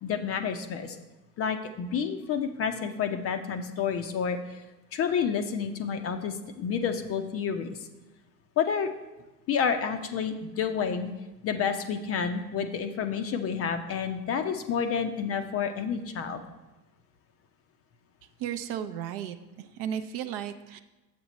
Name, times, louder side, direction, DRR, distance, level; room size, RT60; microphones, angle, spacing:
voice 1, 0.0-1.0 1.4-4.6 4.9-7.8 8.6-8.9 9.5-11.1 11.4-16.4, left 6 dB, 30° left, 8 dB, 0.6 m, -29 dB
voice 2, 18.4-20.8, right 9 dB, 45° right, 8 dB, 0.6 m, -34 dB
7.7 x 6.0 x 4.1 m, 1.1 s
hypercardioid pair, 80°, 49 cm